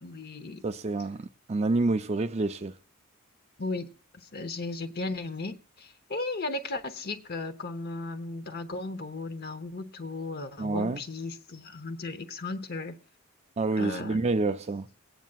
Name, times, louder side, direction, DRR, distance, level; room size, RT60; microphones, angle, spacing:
voice 1, 0.0-0.6 3.6-3.9 4.2-13.0 13.8-14.3, left 3 dB, 50° left, 0.9 m, -36 dB
voice 2, 0.6-2.7 10.6-11.0 13.6-14.9, right 3 dB, 30° right, 0.4 m, -28 dB
23.5 x 9.1 x 2.4 m
head